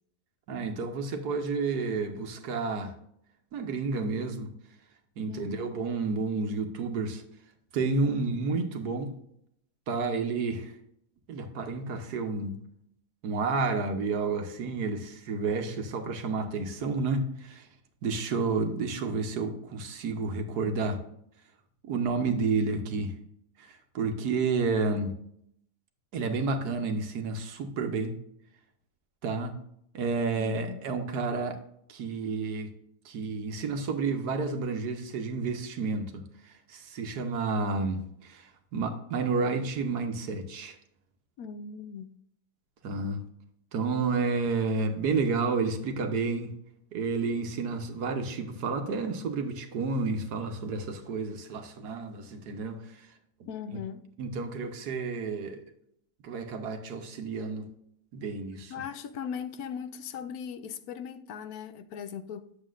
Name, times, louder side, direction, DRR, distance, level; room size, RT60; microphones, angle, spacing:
voice 1, 0.5-2.9 3.5-4.5 5.2-7.2 7.7-9.1 9.9-10.7 11.3-12.6 13.2-17.7 18.0-21.0 21.8-23.1 23.6-25.1 26.1-28.1 29.2-29.5 29.9-31.6 31.9-32.7 33.0-40.8 42.8-43.2 43.7-46.5 46.9-52.8 53.7-53.8 54.2-55.6 56.2-57.6 58.1-58.7, right 4 dB, 80° right, 1.6 m, -30 dB
voice 2, 5.3-5.7 30.4-30.9 41.4-42.2 53.4-54.0 58.7-62.5, left 7 dB, 75° left, 1.1 m, -39 dB
9.4 x 7.4 x 2.5 m
omnidirectional pair, 1.7 m